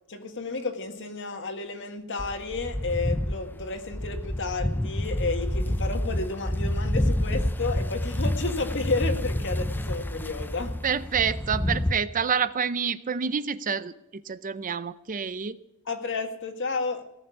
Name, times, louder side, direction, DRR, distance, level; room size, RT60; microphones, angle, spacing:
voice 1, 0.1-10.8 15.9-17.0, left 3 dB, 55° left, 6 dB, 1.9 m, -31 dB
sound 1, 2.2-11.9, left 1 dB, 10° left, 0.5 m, -28 dB
voice 2, 10.8-15.6, right 6 dB, 35° right, 14 dB, 0.5 m, -28 dB
18.0 x 7.0 x 9.8 m, 0.90 s
head